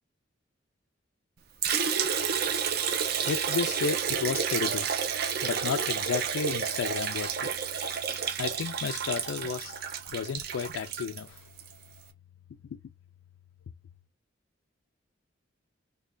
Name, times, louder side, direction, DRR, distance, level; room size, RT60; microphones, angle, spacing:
Liquid, 1.6-11.7, right 7 dB, 50° right, 0.5 m, -30 dB
voice 1, 2.7-4.9 5.4-7.5 8.4-9.8 10.1-11.4, left 6 dB, 90° left, 0.3 m, -33 dB
3.2 x 2.2 x 3.7 m
head